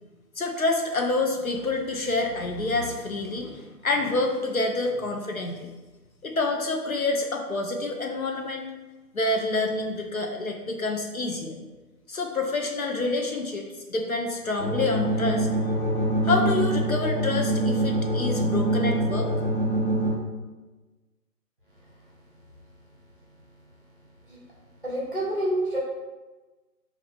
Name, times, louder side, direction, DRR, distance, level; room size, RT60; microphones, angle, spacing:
voice 1, 0.4-5.7 6.2-8.7 9.1-11.5 12.1-15.5 16.2-19.3, left 2 dB, 60° left, 1 dB, 0.5 m, -27 dB
sound 1, 14.6-20.1, right 2 dB, 5° right, 1.4 m, -25 dB
voice 2, 24.8-25.8, right 1 dB, 35° right, -6 dB, 0.8 m, -27 dB
5.6 x 2.3 x 2.3 m, 1.2 s
hypercardioid pair, 175°, 49 cm